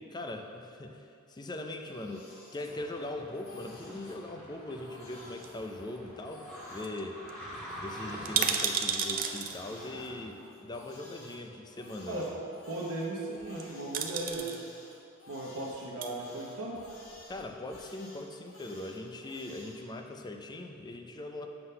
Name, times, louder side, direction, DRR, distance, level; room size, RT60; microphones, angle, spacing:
voice 1, 0.1-7.2 7.8-12.3 17.3-21.5, left 2 dB, 20° left, 4 dB, 0.4 m, -41 dB
Crying sobbing, 1.6-3.1 3.3-4.2 4.7-6.9 7.5-11.4 11.7-19.8, left 1 dB, 85° left, 1.3 m, -54 dB
sound 1, 2.7-10.3, equal, 5° left, 1.7 m, -46 dB
sound 2, 5.4-6.2 6.5-6.6 6.8-7.0 7.3-7.4 8.1-9.6 10.7-10.8 13.4-13.6 13.9-14.6 15.7-16.1 16.8-17.5 17.7-17.8, right 7 dB, 45° right, 0.4 m, -32 dB
voice 2, 12.7-14.5 15.3-16.8, right 2 dB, 85° right, -5 dB, 0.9 m, -36 dB
7.8 x 3.8 x 5.4 m, 2.5 s
head